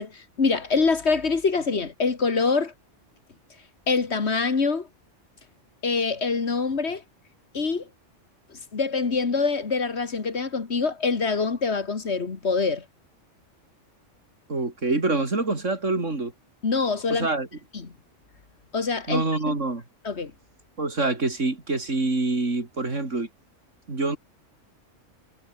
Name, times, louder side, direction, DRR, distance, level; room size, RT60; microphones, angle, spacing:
voice 1, 0.0-2.7 3.9-4.9 5.8-7.0 7.5-7.9 8.7-12.8 16.6-17.3 17.7-17.9 18.7-19.6 20.0-20.3, left 4 dB, 60° left, 2.1 m, -25 dB
voice 2, 14.5-16.3 17.1-17.5 19.1-19.8 20.8-23.3 23.9-24.2, right 3 dB, 80° right, 4.2 m, -26 dB
omnidirectional pair, 1.3 m